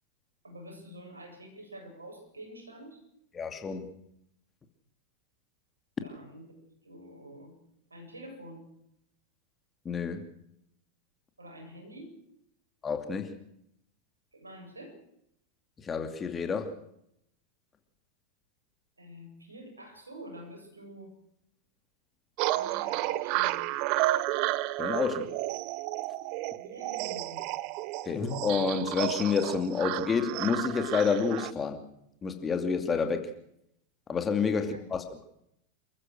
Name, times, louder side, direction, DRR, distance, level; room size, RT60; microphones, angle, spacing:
voice 1, 0.4-3.0 6.0-6.5 6.8-7.6 7.9-8.6 11.4-12.2 14.3-15.0 19.0-21.2 22.5-23.6 26.6-27.4 34.5-34.9, right 1 dB, 80° right, 3 dB, 7.7 m, -47 dB
voice 2, 3.3-3.9 9.8-10.2 12.8-13.4 15.8-16.8 24.8-25.4 28.0-31.8 32.2-33.3 34.1-35.0, left 5 dB, 20° left, 6 dB, 2.6 m, -29 dB
sound 1, 22.4-31.5, right 17 dB, 45° right, 0.7 m, -32 dB
29.0 x 15.0 x 6.4 m, 0.76 s
figure-of-eight pair, 90°, 0 cm